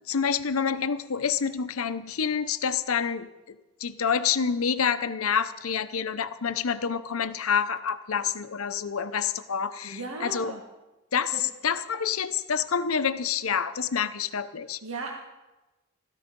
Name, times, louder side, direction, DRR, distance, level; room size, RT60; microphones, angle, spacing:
voice 1, 0.0-10.5 11.1-14.8, left 7 dB, 80° left, 12 dB, 0.7 m, -28 dB
voice 2, 9.8-10.6 11.3-11.4 14.8-15.1, right 3 dB, 75° right, 1 dB, 1.7 m, -36 dB
17.5 x 13.5 x 5.3 m, 1.1 s
head